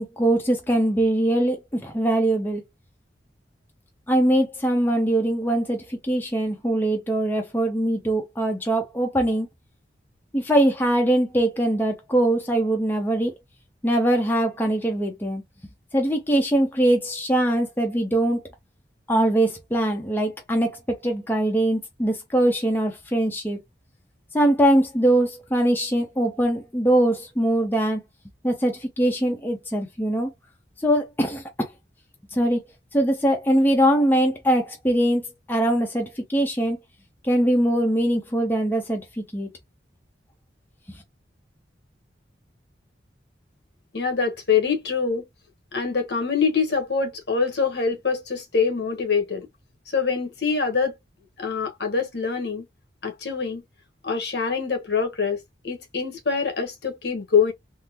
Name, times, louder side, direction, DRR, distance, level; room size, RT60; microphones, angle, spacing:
voice 1, 0.0-2.6 4.1-9.5 10.3-13.4 13.8-15.4 15.9-18.4 19.1-23.6 24.3-28.0 28.4-30.3 30.8-31.7 32.3-32.6 32.9-36.8 37.2-39.5 40.9-41.0, right 1 dB, 10° left, 0.6 m, -22 dB
voice 2, 43.9-45.2 45.7-49.5 49.9-50.9 51.4-52.7 53.0-53.6 54.0-57.5, left 5 dB, 65° left, 1.1 m, -24 dB
3.6 x 2.0 x 2.8 m
head